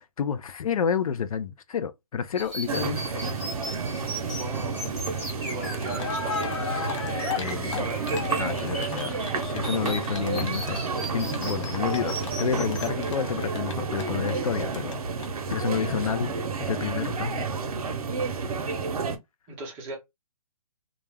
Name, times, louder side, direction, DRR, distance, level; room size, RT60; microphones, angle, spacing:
voice 1, 0.0-3.2 7.4-10.8 11.1-15.0 15.5-17.5, left 7 dB, 70° left, 0.4 m, -30 dB
sound 1, 2.3-12.9, equal, 10° left, 1.1 m, -38 dB
sound 2, 2.7-19.2, right 4 dB, 80° right, 0.6 m, -30 dB
voice 2, 4.3-4.9 5.4-6.6 19.5-20.0, right 3 dB, 15° right, 0.5 m, -38 dB
Cheering, 5.5-5.6 5.8-14.9 15.2-15.3 15.5-15.6, left 6 dB, 55° left, 0.9 m, -36 dB
2.3 x 2.0 x 3.2 m
hypercardioid pair, 160°, 19 cm